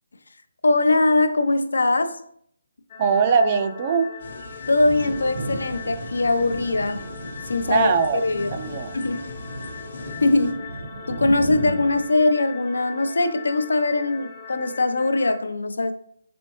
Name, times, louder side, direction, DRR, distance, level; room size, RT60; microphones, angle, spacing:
voice 1, 0.6-2.2 4.7-7.1 7.5-8.5 8.9-9.2 10.2-10.7 11.1-15.9, left 2 dB, 85° left, 9 dB, 0.5 m, -21 dB
sound 1, 2.9-15.4, left 6 dB, 30° left, 0.7 m, -40 dB
voice 2, 3.0-4.1 7.7-8.2 8.5-8.9, right 5 dB, 30° right, 8 dB, 0.3 m, -21 dB
sound 2, 4.2-10.5, left 2 dB, 55° left, 0.9 m, -39 dB
Thunder, 4.8-12.1, right 1 dB, 50° right, 0.8 m, -35 dB
4.3 x 3.4 x 3.0 m, 0.63 s
hypercardioid pair, 165°, 0 cm